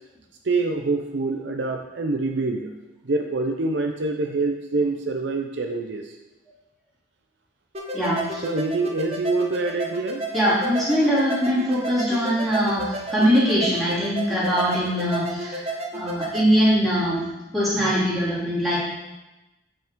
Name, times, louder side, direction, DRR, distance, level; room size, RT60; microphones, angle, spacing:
voice 1, 0.4-2.7 3.0-6.1 8.4-10.2, right 3 dB, 60° right, 3 dB, 0.5 m, -25 dB
sound 1, 7.7-16.5, right 1 dB, 30° right, 0.8 m, -32 dB
voice 2, 7.9-8.4 10.3-15.7 15.9-17.2 17.5-18.8, equal, ahead, -11 dB, 2.8 m, -22 dB
8.9 x 5.3 x 3.7 m, 1.0 s
head